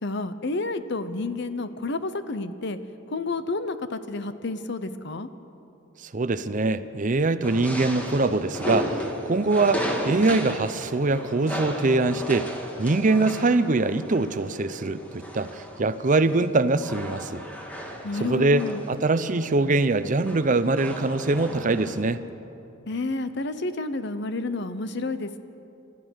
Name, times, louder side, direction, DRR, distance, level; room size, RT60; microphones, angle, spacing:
voice 1, 0.0-2.8 3.1-5.3 18.0-18.8 22.9-25.4, left 3 dB, 60° left, 11 dB, 0.9 m, -30 dB
voice 2, 6.1-12.5 12.8-17.4 18.2-22.2, right 3 dB, 40° right, 13 dB, 0.7 m, -23 dB
sound 1, 7.4-22.0, equal, 10° left, 2.0 m, -35 dB
29.5 x 13.5 x 6.4 m, 2.9 s
head